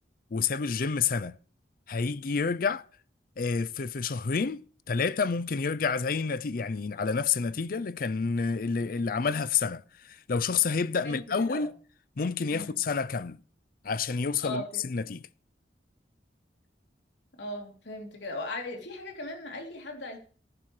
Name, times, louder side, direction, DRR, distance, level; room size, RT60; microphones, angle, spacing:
voice 1, 0.3-1.4 1.9-2.9 3.4-4.6 4.9-11.7 12.2-13.4 13.8-15.2, left 5 dB, 50° left, 0.5 m, -29 dB
voice 2, 11.0-11.7 12.5-12.8 14.4-14.8 17.4-20.2, left 1 dB, 85° left, 3.3 m, -38 dB
14.5 x 11.0 x 3.3 m
head